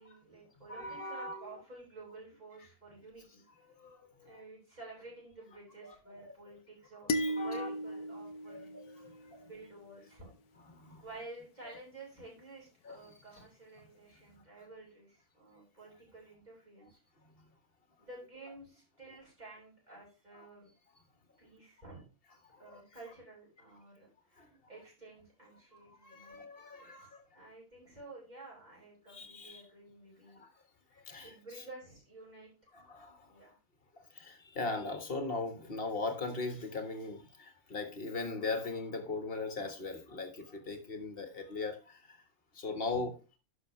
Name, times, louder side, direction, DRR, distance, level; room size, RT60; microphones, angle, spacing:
voice 1, 0.0-3.4 4.2-7.1 7.4-8.8 9.4-10.3 11.0-17.0 18.0-20.7 21.4-22.0 22.6-26.5 26.7-27.1 27.3-30.4 31.2-32.5 33.3-33.6 42.9-43.0, right 2 dB, 30° right, -4 dB, 5.6 m, -52 dB
voice 2, 0.7-1.5 3.8-4.4 5.8-6.3 7.1-7.7 8.5-9.5 10.6-11.0 11.6-11.7 12.8-13.0 20.3-20.5 22.5-22.8 24.4-24.5 25.7-27.2 29.1-29.6 30.3-30.5 30.9-31.6 32.7-33.3 33.9-42.2 42.5-43.1, left 3 dB, 40° left, 6 dB, 1.7 m, -40 dB
sound 1, 7.1-9.5, equal, 80° left, 1.3 m, -36 dB
11.5 x 6.3 x 3.2 m, 0.31 s
omnidirectional pair, 1.5 m